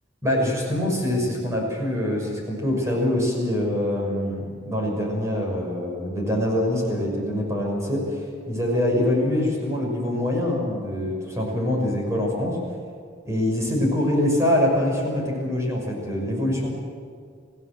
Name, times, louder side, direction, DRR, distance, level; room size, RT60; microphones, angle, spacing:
voice 1, 0.2-8.2 8.5-12.6 13.3-16.7, left 1 dB, 15° right, -1 dB, 5.8 m, -24 dB
25.5 x 16.0 x 7.7 m, 2.2 s
head